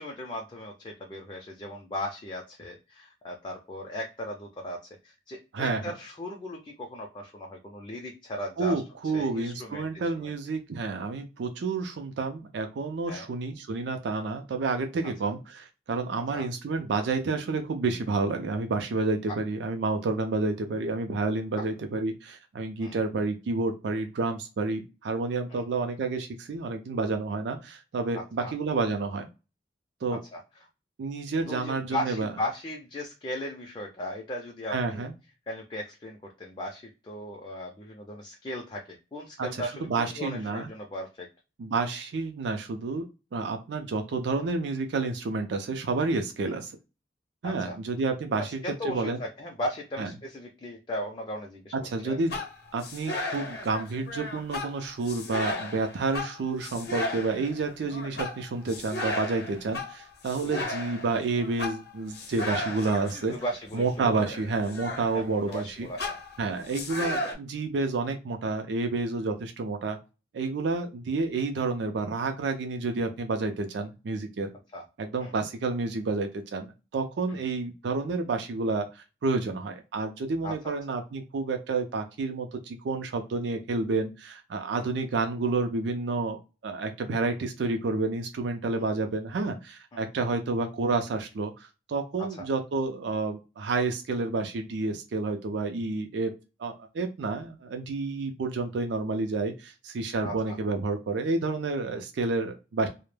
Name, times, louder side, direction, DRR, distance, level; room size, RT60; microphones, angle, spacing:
voice 1, 0.0-4.8 5.0-8.8 9.1-10.3 13.1-13.3 15.2-15.3 16.3-16.5 19.3-19.4 21.5-21.6 22.8-23.0 25.5-25.6 28.1-28.5 30.3-30.4 31.5-35.1 35.5-41.3 47.4-47.8 48.3-51.7 52.0-52.2 60.5-60.6 63.3-64.2 65.1-66.2 74.7-74.8 75.2-75.3 77.3-77.4 80.4-80.7 84.8-84.9 89.9-90.0 92.4-92.5 100.2-100.6, left 1 dB, 25° left, 1 dB, 0.4 m, -37 dB
voice 2, 5.5-5.9 8.6-29.3 30.0-30.2 31.0-32.3 34.7-35.1 39.4-40.7 41.6-43.1 43.3-46.7 47.4-49.2 50.0-50.1 51.8-52.4 52.7-63.3 63.7-65.9 66.4-70.0 70.3-74.5 75.0-96.3 96.6-102.9, right 3 dB, 75° right, 6 dB, 0.4 m, -30 dB
sound 1, 52.3-65.6 66.0-67.3, left 2 dB, 60° left, 0.7 m, -35 dB
2.1 x 2.0 x 3.1 m, 0.29 s
head